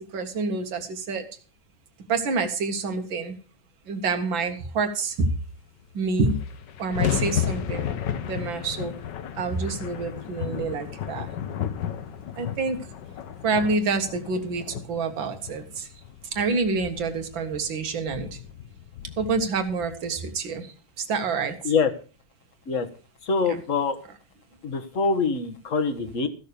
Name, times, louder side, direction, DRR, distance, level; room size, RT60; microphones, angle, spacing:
voice 1, 0.1-1.3 2.1-3.4 3.9-5.3 5.9-6.4 6.8-7.9 8.3-8.9 9.4-11.3 12.4-12.8 13.4-15.9 16.3-18.4 19.2-20.7 21.0-21.6, right 4 dB, 65° right, 6 dB, 2.4 m, -27 dB
sound 1, 5.8-5.9 6.0-20.4, left 9 dB, 65° left, 1.5 m, -33 dB
voice 2, 23.2-24.0 24.6-26.3, left 4 dB, 40° left, 8 dB, 1.6 m, -24 dB
15.5 x 6.6 x 6.8 m, 0.38 s
omnidirectional pair, 2.3 m